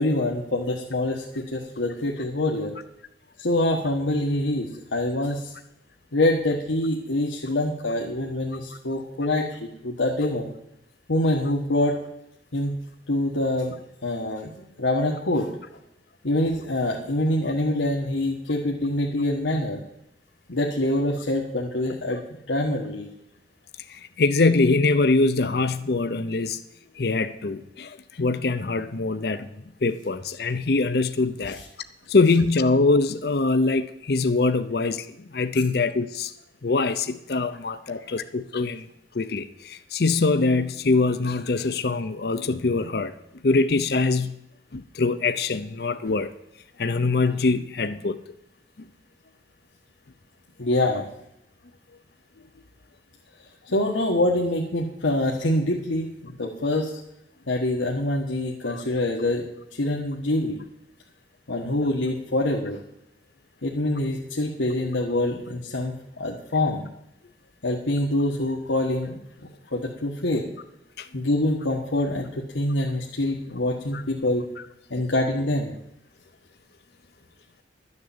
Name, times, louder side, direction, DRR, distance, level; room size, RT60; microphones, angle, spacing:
voice 1, 0.0-2.7 3.4-5.5 6.1-10.5 11.1-12.0 12.5-12.7 13.1-13.8 14.0-15.6 16.2-19.8 20.5-23.1 50.6-51.1 53.7-57.0 57.5-60.6 61.5-62.8 63.6-66.8 67.6-69.2 69.7-70.5 71.1-74.5 74.9-75.8, left 1 dB, 85° left, -1 dB, 1.4 m, -25 dB
voice 2, 23.9-26.6 26.9-29.6 29.8-31.6 32.1-36.3 36.6-38.9 39.1-43.2 43.4-44.3 44.7-46.3 46.8-48.2 58.7-58.8 71.0-71.1 73.9-74.0, left 3 dB, 55° left, 11 dB, 0.6 m, -23 dB
12.5 x 6.7 x 8.7 m, 0.82 s
head